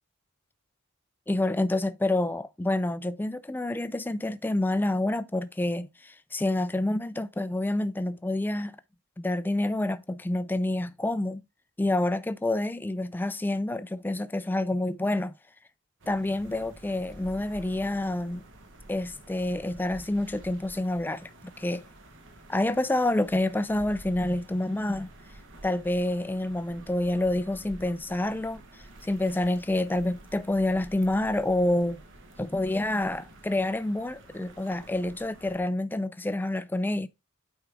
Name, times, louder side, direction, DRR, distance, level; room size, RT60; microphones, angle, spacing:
voice 1, 1.3-8.8 9.2-11.4 11.8-15.3 16.1-18.4 18.9-21.3 21.6-21.8 22.5-25.1 25.6-28.6 29.0-32.0 32.4-37.1, left 1 dB, 10° left, 0.3 m, -28 dB
sound 1, 16.0-35.6, right 1 dB, 60° right, 1.3 m, -49 dB
9.1 x 4.7 x 3.5 m
head